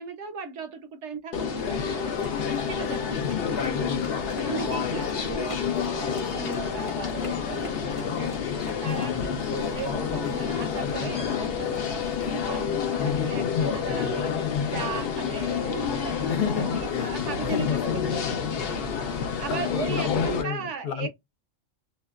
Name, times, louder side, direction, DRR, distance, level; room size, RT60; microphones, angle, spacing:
voice 1, 0.0-2.1 2.6-3.3 4.5-5.6 5.9-8.4 8.8-14.4 14.7-17.8 18.3-18.9 19.4-21.1, right 6 dB, 65° right, 0.8 m, -37 dB
sound 1, 1.3-20.4, left 7 dB, 60° left, 0.6 m, -28 dB
sound 2, 1.9-12.7, left 1 dB, 20° left, 0.5 m, -45 dB
voice 2, 3.2-3.8 8.8-9.3 13.6-13.8 16.3-18.5 19.5-21.1, left 7 dB, 85° left, 1.2 m, -32 dB
2.8 x 2.2 x 2.2 m
omnidirectional pair, 1.5 m